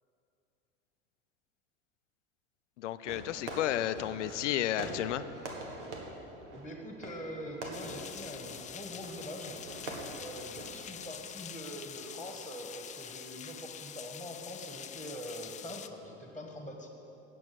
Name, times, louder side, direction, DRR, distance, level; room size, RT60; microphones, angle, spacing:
voice 1, 2.8-5.2, left 12 dB, 85° left, 13 dB, 0.5 m, -32 dB
Fireworks, 3.0-11.1, right 2 dB, 85° right, 1.6 m, -44 dB
voice 2, 6.5-9.9 10.2-16.9, equal, 5° left, 2 dB, 1.4 m, -44 dB
sound 1, 7.7-15.9, left 9 dB, 20° left, 0.4 m, -46 dB
9.3 x 7.0 x 7.8 m, 2.9 s
hypercardioid pair, 85°, 35 cm